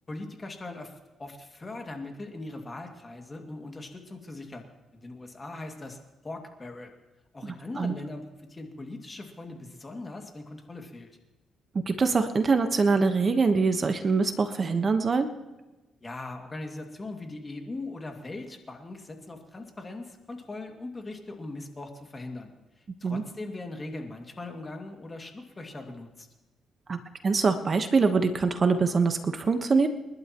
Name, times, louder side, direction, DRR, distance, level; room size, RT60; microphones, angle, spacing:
voice 1, 0.1-0.9 1.2-4.7 4.9-6.9 7.3-11.1 16.0-22.5 22.8-26.3, left 2 dB, 25° left, 3 dB, 2.3 m, -40 dB
voice 2, 7.4-7.9 11.9-15.3 23.0-23.2 26.9-27.0 27.2-29.9, right 4 dB, 40° right, 8 dB, 1.2 m, -24 dB
29.5 x 12.0 x 3.1 m, 1.1 s
cardioid pair, 90°, 0 cm